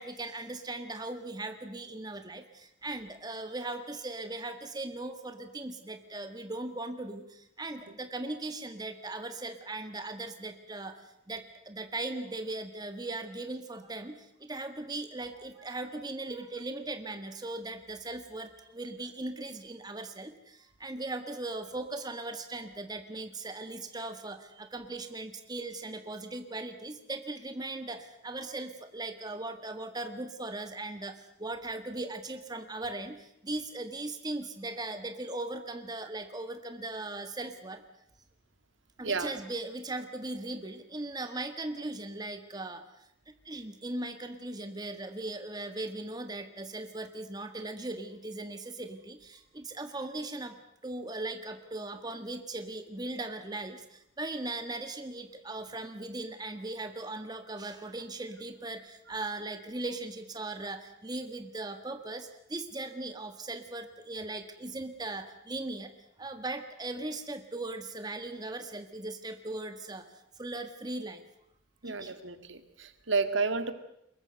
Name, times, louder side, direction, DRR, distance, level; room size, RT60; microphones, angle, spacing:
voice 1, 0.0-7.2 7.6-10.9 11.3-14.1 14.4-33.2 33.4-37.8 39.0-42.8 43.4-50.6 50.8-65.9 66.2-70.0 70.4-71.2 71.8-72.1, right 2 dB, 20° right, 7 dB, 1.6 m, -38 dB
voice 2, 71.8-73.7, right 4 dB, 75° right, 9 dB, 1.9 m, -31 dB
23.0 x 21.0 x 7.8 m, 0.75 s
head